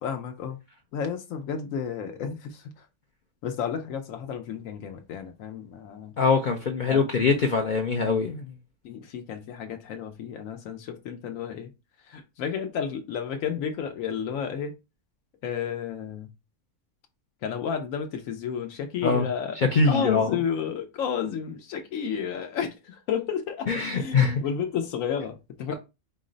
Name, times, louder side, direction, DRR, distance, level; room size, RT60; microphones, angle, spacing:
voice 1, 0.0-0.6 0.9-2.6 3.4-6.1 6.9-7.0 8.8-11.7 12.1-14.7 15.4-16.3 17.4-19.6 19.8-25.7, left 7 dB, 85° left, 1.0 m, -32 dB
voice 2, 6.2-8.5 19.0-19.3 19.5-20.4 23.7-24.4 25.7-25.8, left 4 dB, 60° left, 0.5 m, -23 dB
4.6 x 2.1 x 3.8 m
omnidirectional pair, 1.4 m